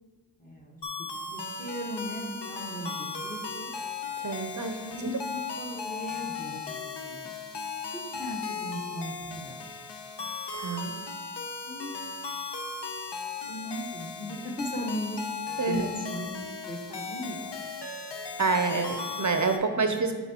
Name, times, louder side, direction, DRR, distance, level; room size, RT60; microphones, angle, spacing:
voice 1, 0.4-3.7 4.7-7.3 7.9-9.6 11.6-11.9 13.4-15.2 15.7-16.3 16.7-17.5 19.7-20.0, equal, 20° left, -1 dB, 1.2 m, -38 dB
sound 1, 0.8-19.6, left 5 dB, 70° left, 0.7 m, -37 dB
voice 2, 4.2-5.2 10.5-11.0 15.6-15.9 18.4-20.1, right 4 dB, 45° right, 6 dB, 0.6 m, -28 dB
10.0 x 4.5 x 2.9 m, 1.4 s
wide cardioid pair, 55°, 43 cm